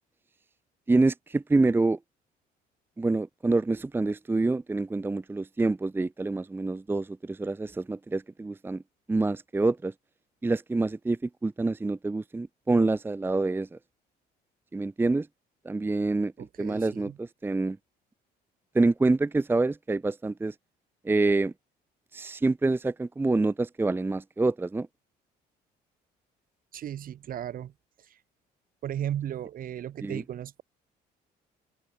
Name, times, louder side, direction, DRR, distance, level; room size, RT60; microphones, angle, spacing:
voice 1, 0.9-2.0 3.0-8.8 9.1-9.9 10.4-13.8 14.7-15.3 15.6-16.3 16.6-17.8 18.7-20.5 21.0-21.5 22.1-24.9 30.0-30.2, right 3 dB, 10° right, 0.7 m, -26 dB
voice 2, 16.4-17.2 26.7-27.7 28.1-28.2 28.8-30.6, right 10 dB, 55° right, 5.0 m, -35 dB
open air
cardioid pair, 110°, 17 cm